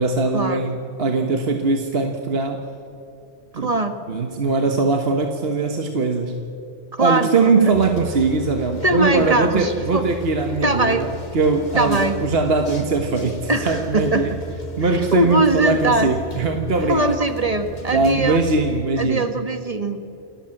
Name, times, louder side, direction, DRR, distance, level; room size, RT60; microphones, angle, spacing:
voice 1, 0.0-2.6 3.5-3.7 4.1-6.4 7.0-14.4 14.8-17.2 17.9-19.3, right 3 dB, 55° right, 5 dB, 1.6 m, -21 dB
voice 2, 3.5-4.0 7.0-7.7 8.8-10.0 10.6-11.1 11.7-12.2 13.5-14.3 15.1-16.1 16.9-18.4 19.0-20.0, right 2 dB, 30° right, 7 dB, 1.7 m, -21 dB
sound 1, 7.7-18.8, right 1 dB, 40° left, 2.2 m, -35 dB
29.0 x 18.0 x 7.8 m, 2.7 s
omnidirectional pair, 1.2 m